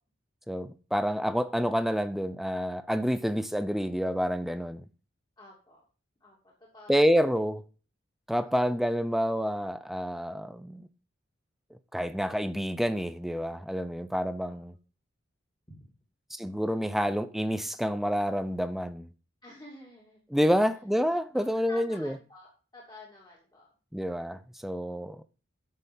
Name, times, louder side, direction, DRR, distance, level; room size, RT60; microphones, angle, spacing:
voice 1, 0.5-4.9 6.9-7.6 8.3-10.9 11.9-14.7 16.3-19.1 20.3-22.2 23.9-25.2, equal, ahead, 0.6 m, -28 dB
voice 2, 5.4-5.8 6.2-7.2 8.4-8.8 14.4-14.6 15.7-15.9 19.4-20.2 21.3-23.7, left 1 dB, 20° left, 2.9 m, -50 dB
10.0 x 6.9 x 5.5 m
head